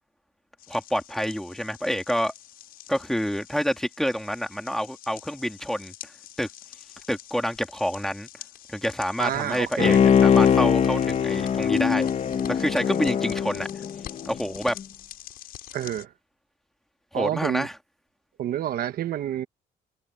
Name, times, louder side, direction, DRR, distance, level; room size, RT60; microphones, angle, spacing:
sound 1, 0.6-16.1, left 12 dB, 70° left, 6.8 m, -46 dB
voice 1, 0.7-2.3 2.9-6.1 6.4-6.5 7.1-8.3 8.7-12.1 12.5-13.7 14.2-14.8 17.1-17.8, equal, ahead, 3.0 m, -28 dB
voice 2, 9.2-10.0 15.7-16.1 17.1-17.7 18.4-19.5, right 11 dB, 65° right, 1.5 m, -28 dB
Bowed string instrument, 9.8-14.4 14.8-14.9, left 8 dB, 45° left, 1.2 m, -21 dB
cardioid pair, 115°, 16 cm